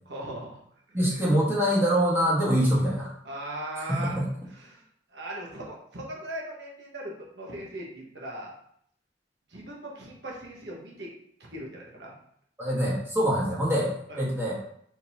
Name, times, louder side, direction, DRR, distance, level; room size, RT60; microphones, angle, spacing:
voice 1, 0.1-0.6 0.9-1.3 3.2-4.2 4.5-4.8 5.1-8.5 9.5-11.1 11.5-12.2 14.1-14.2, right 1 dB, 70° right, -3 dB, 1.3 m, -39 dB
voice 2, 0.9-3.1 3.8-4.3 12.6-13.9 14.2-14.6, equal, 15° right, -6 dB, 1.3 m, -24 dB
4.6 x 3.8 x 2.8 m, 0.68 s
head